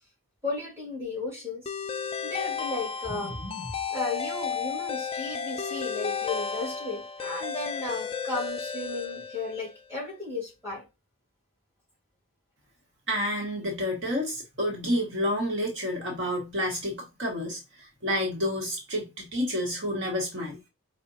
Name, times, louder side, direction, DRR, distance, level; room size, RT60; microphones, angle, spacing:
voice 1, 0.4-1.7 2.2-10.9, left 3 dB, 10° right, 2.4 m, -34 dB
sound 1, 1.7-9.8, left 6 dB, 25° left, 0.4 m, -33 dB
voice 2, 13.1-20.6, equal, 55° right, 1.1 m, -29 dB
4.9 x 2.1 x 3.9 m
head